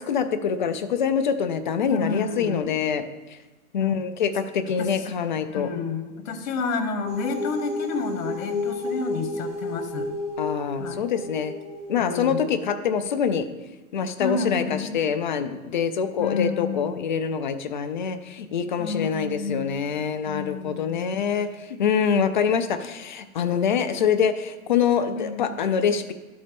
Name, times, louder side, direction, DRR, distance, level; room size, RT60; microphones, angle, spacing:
voice 1, 0.0-3.4 3.7-5.7 10.4-11.5 11.9-13.5 13.9-26.1, left 7 dB, 35° left, 10 dB, 0.4 m, -25 dB
voice 2, 1.9-2.7 3.8-4.0 4.8-4.9 5.5-10.1 10.8-11.1 12.0-12.5 14.2-14.9 16.2-17.1 18.8-19.8 20.2-21.2 25.2-25.5, left 4 dB, 60° left, 9 dB, 1.2 m, -30 dB
sound 1, 7.1-12.6, left 2 dB, 5° left, 2.1 m, -32 dB
11.5 x 4.3 x 5.1 m, 1.2 s
hypercardioid pair, 140°, 46 cm